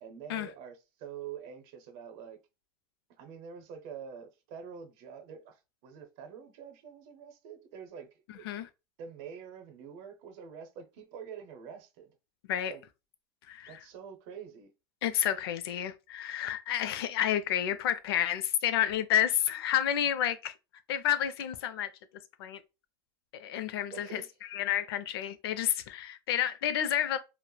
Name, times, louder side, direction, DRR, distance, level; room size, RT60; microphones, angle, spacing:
voice 1, 0.0-2.4 3.2-8.5 9.0-12.1 12.7-12.8 13.7-14.7 23.9-24.3, right 7 dB, 55° right, 0.6 m, -46 dB
voice 2, 8.3-8.7 12.5-12.7 13.5-13.8 15.0-20.5 20.9-21.9 22.4-22.6 23.3-24.2 24.5-27.2, left 11 dB, 85° left, 0.4 m, -30 dB
3.0 x 2.0 x 2.2 m
supercardioid pair, 135°, 13 cm